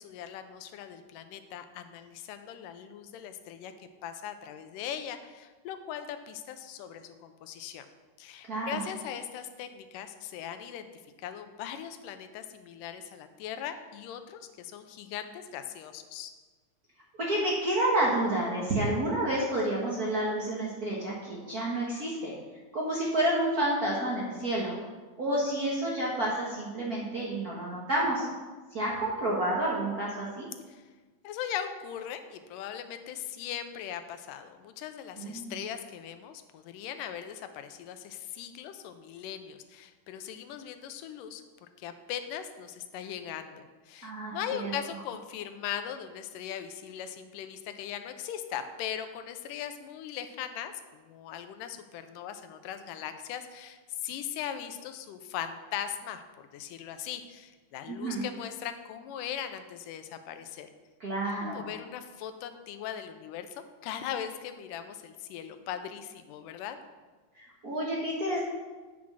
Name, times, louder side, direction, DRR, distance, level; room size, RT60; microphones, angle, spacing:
voice 1, 0.0-7.9 8.2-10.9 11.2-16.3 30.7-30.9 31.2-60.7 61.4-66.8, left 9 dB, 90° left, 9 dB, 2.3 m, -39 dB
voice 2, 8.5-8.8 17.1-22.3 22.7-24.8 25.2-28.3 28.7-30.5 35.2-35.5 44.0-44.7 57.9-58.2 61.0-61.7 67.4-68.4, right 1 dB, 55° right, -4 dB, 1.0 m, -29 dB
8.5 x 6.1 x 6.1 m, 1.3 s
omnidirectional pair, 3.7 m